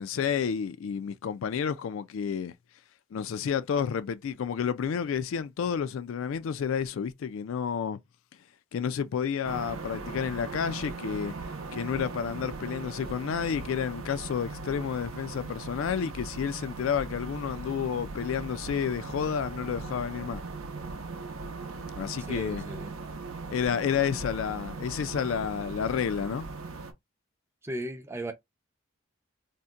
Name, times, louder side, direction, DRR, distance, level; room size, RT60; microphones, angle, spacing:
voice 1, 0.0-2.5 3.1-8.0 8.7-11.3 11.7-20.4 22.0-22.6 23.5-26.5, left 7 dB, 75° left, 0.3 m, -30 dB
sound 1, 9.4-26.9, right 3 dB, 80° right, 0.6 m, -39 dB
voice 2, 22.3-22.9 27.6-28.3, right 1 dB, 10° right, 0.5 m, -36 dB
2.7 x 2.1 x 3.5 m
head